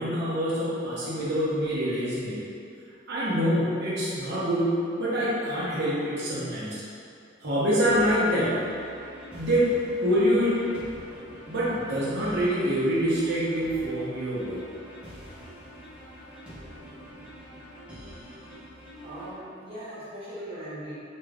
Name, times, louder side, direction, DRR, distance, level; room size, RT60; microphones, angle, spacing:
voice 1, 0.0-2.4 3.1-6.8 7.4-8.7 9.3-10.7 11.5-14.6, equal, 60° right, -8 dB, 0.9 m, -25 dB
sound 1, 7.9-19.3, equal, 5° right, 0.6 m, -45 dB
voice 2, 19.0-20.9, right 1 dB, 30° right, -10 dB, 0.9 m, -39 dB
2.9 x 2.3 x 3.4 m, 2.6 s
head